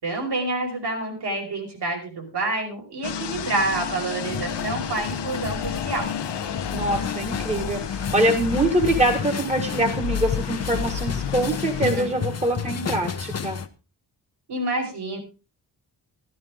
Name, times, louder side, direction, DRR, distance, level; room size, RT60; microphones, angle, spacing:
voice 1, 0.0-6.1 11.7-12.1 14.5-15.2, right 2 dB, 70° right, 0 dB, 5.2 m, -28 dB
sound 1, 3.0-11.9, left 8 dB, 75° left, 1.1 m, -31 dB
sound 2, 4.2-13.7, left 6 dB, 35° left, 0.9 m, -32 dB
voice 2, 6.7-13.6, right 1 dB, 15° right, 5 dB, 1.6 m, -24 dB
13.5 x 12.5 x 3.7 m, 0.31 s
wide cardioid pair, 140°, 42 cm